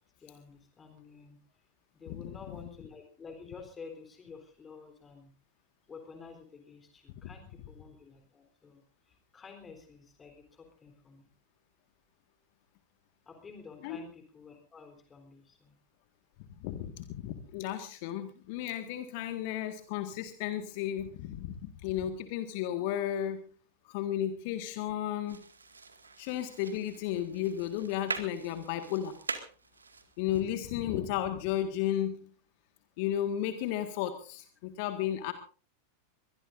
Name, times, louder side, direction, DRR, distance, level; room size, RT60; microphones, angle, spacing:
voice 1, 0.2-1.4 1.9-5.3 5.9-11.3 13.3-15.8, left 5 dB, 20° left, 5 dB, 3.9 m, -50 dB
voice 2, 16.6-23.5 23.8-25.4 26.2-29.1 30.2-32.3 33.0-35.3, left 11 dB, 45° left, 8 dB, 1.8 m, -33 dB
sound 1, 25.3-30.4, right 4 dB, 75° right, 2.1 m, -43 dB
23.0 x 21.5 x 2.6 m, 0.39 s
figure-of-eight pair, 90°, 0 cm